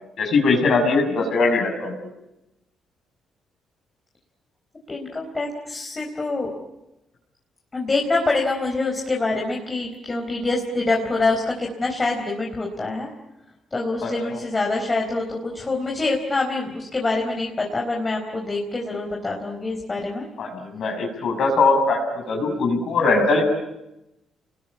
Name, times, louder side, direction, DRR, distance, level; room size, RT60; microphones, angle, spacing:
voice 1, 0.2-1.9 14.0-14.4 20.4-23.4, left 3 dB, 65° left, 2 dB, 6.1 m, -21 dB
voice 2, 4.9-6.5 7.7-13.1 13.7-20.3, left 3 dB, 25° left, 0 dB, 4.4 m, -25 dB
28.5 x 22.0 x 8.5 m, 0.94 s
cardioid pair, 90°, 0 cm